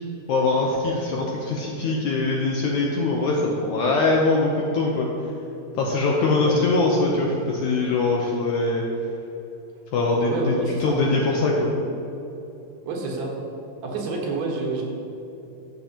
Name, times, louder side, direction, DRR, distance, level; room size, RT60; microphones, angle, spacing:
voice 1, 0.3-5.1 5.8-8.8 9.9-10.5 10.8-11.7, left 3 dB, 75° left, -2 dB, 1.8 m, -22 dB
voice 2, 10.3-11.2 12.9-13.3 13.8-14.8, right 3 dB, 80° right, -1 dB, 3.2 m, -28 dB
14.5 x 6.9 x 2.9 m, 2.9 s
omnidirectional pair, 4.3 m